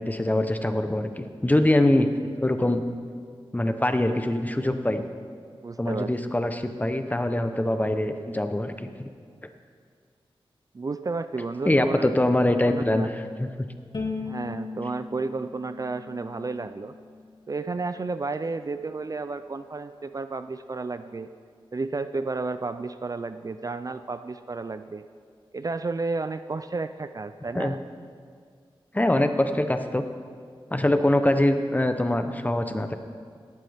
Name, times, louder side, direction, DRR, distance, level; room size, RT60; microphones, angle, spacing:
voice 1, 0.0-2.1 2.4-2.8 3.5-5.0 5.8-9.1 11.7-13.1 13.4-13.5 27.5-27.7 28.9-30.0 30.7-32.9, left 1 dB, 15° left, 7 dB, 0.8 m, -23 dB
voice 2, 5.6-6.3 10.7-12.1 12.5-13.1 14.2-16.9 17.5-21.3 21.7-25.0 25.5-27.8, right 3 dB, 40° right, 11 dB, 0.4 m, -32 dB
Bowed string instrument, 13.9-17.2, left 4 dB, 55° left, 1.8 m, -37 dB
17.5 x 11.5 x 3.5 m, 2.1 s
wide cardioid pair, 75°, 9 cm